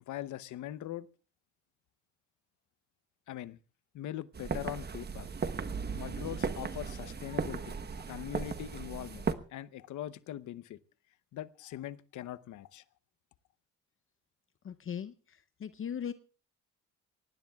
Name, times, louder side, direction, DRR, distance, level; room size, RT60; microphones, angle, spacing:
voice 1, 0.1-1.1 3.3-3.6 3.9-5.3 5.9-7.7 8.1-10.8 11.3-12.8, left 12 dB, 75° left, 17 dB, 0.8 m, -41 dB
sound 1, 4.3-9.3, right 5 dB, 35° right, 1.1 m, -36 dB
voice 2, 14.6-16.1, left 8 dB, 45° left, 12 dB, 0.7 m, -39 dB
23.5 x 18.5 x 2.3 m, 0.35 s
cardioid pair, 90°, 30 cm